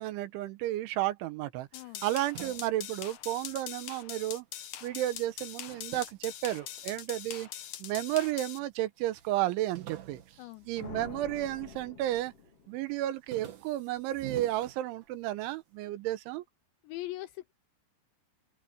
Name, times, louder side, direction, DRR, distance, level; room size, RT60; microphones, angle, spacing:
voice 1, 0.0-1.7 2.0-4.5 4.8-7.5 7.8-10.2 10.7-12.3 12.7-16.4, right 14 dB, 80° right, 3.2 m, -32 dB
voice 2, 1.7-2.0 10.4-10.7 16.8-17.5, left 17 dB, 85° left, 2.6 m, -41 dB
sound 1, 1.7-8.6, left 11 dB, 65° left, 2.2 m, -43 dB
sound 2, 1.7-4.4 4.7-7.2 7.8-8.5 8.8-8.9 9.1-11.7 12.1-12.6 12.9-15.5, right 11 dB, 55° right, 2.4 m, -50 dB
sound 3, 10.8-13.0, left 5 dB, 35° left, 3.4 m, -47 dB
open air
omnidirectional pair, 5.7 m